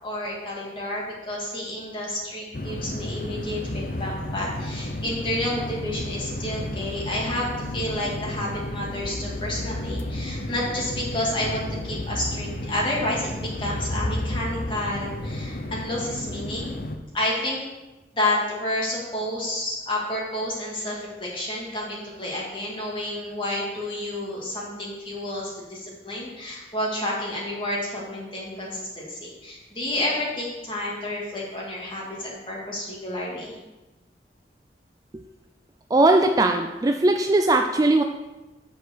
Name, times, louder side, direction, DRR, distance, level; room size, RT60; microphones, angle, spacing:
voice 1, 0.0-16.7 17.1-17.6 18.1-33.6, left 1 dB, 30° left, -4 dB, 2.1 m, -30 dB
sound 1, 2.5-17.0, left 1 dB, 55° left, 0.7 m, -32 dB
voice 2, 35.9-38.0, right 2 dB, 20° right, 5 dB, 0.3 m, -19 dB
6.4 x 4.7 x 6.8 m, 1.1 s
head